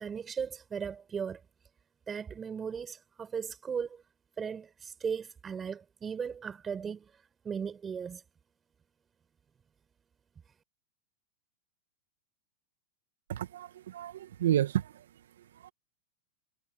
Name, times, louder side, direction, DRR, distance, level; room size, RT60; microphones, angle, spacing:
voice 1, 0.0-1.4 2.1-4.0 4.4-8.2, right 6 dB, 20° right, 5.3 m, -37 dB
voice 2, 13.3-15.1 15.6-15.7, right 11 dB, 75° right, 1.9 m, -31 dB
hypercardioid pair, 105°, 0 cm